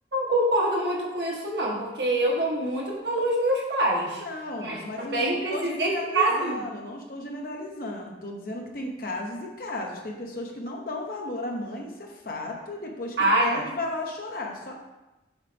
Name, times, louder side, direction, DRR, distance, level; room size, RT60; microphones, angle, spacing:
voice 1, 0.1-4.2 4.6-6.6 13.2-13.6, right 1 dB, 70° right, -2 dB, 1.3 m, -25 dB
voice 2, 4.2-14.7, left 2 dB, 50° left, 1 dB, 0.9 m, -34 dB
7.2 x 4.0 x 3.5 m, 1.0 s
head